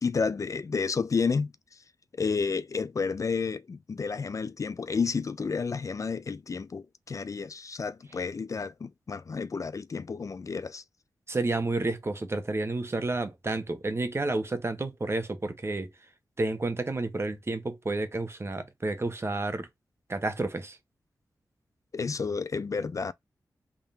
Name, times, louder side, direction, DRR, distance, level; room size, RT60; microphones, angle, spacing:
voice 1, 0.0-1.5 2.2-10.8 21.9-23.1, left 5 dB, 50° left, 0.4 m, -31 dB
voice 2, 11.3-15.9 16.4-19.7 20.1-20.8, right 2 dB, 35° right, 1.0 m, -30 dB
3.7 x 3.1 x 2.8 m
cardioid pair, 45°, 7 cm